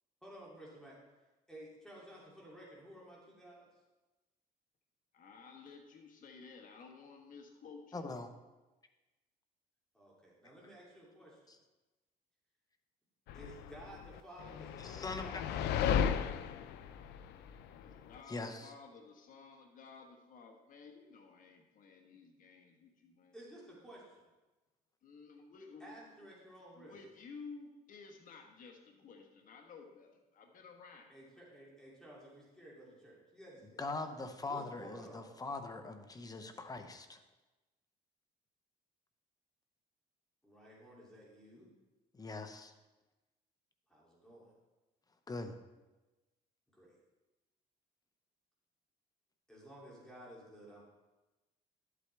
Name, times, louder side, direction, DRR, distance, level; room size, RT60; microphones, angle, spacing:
voice 1, 0.2-1.0 1.5-3.7 9.9-11.5 13.3-15.8 23.3-24.3 25.8-27.0 31.1-33.8 34.5-35.3 40.4-41.7 43.9-44.5 46.7-47.0 49.5-50.8, right 1 dB, 5° left, -5 dB, 2.7 m, -54 dB
voice 2, 5.1-8.0 17.8-23.3 25.0-26.0 26.7-31.1, left 5 dB, 50° left, 2 dB, 1.4 m, -54 dB
voice 3, 7.9-8.3 11.5-11.6 14.8-15.4 18.3-18.7 33.8-37.2 42.1-42.7 45.3-45.6, left 3 dB, 20° left, 7 dB, 0.9 m, -42 dB
sound 1, 13.3-18.2, left 8 dB, 80° left, 0.5 m, -35 dB
11.5 x 8.3 x 3.4 m, 1.1 s
cardioid pair, 110°, 17 cm